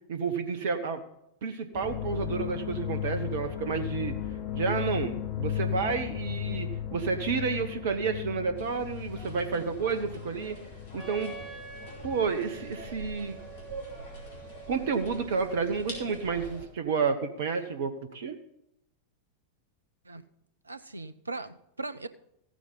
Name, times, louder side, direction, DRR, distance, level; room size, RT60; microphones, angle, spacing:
voice 1, 0.1-1.0 1.4-4.2 4.5-10.6 10.9-11.3 12.0-13.4 14.7-18.4, right 5 dB, 55° right, 9 dB, 1.1 m, -30 dB
sound 1, 1.7-13.9 14.1-14.6, left 10 dB, 40° left, 1.0 m, -36 dB
sound 2, 8.5-16.6, right 1 dB, 60° left, 4.6 m, -45 dB
Wind instrument woodwind instrument, 11.0-16.6, right 6 dB, ahead, 2.1 m, -48 dB
voice 2, 20.6-22.1, right 3 dB, 80° right, 14 dB, 0.6 m, -39 dB
15.0 x 9.8 x 3.9 m, 0.80 s
figure-of-eight pair, 90°, 0 cm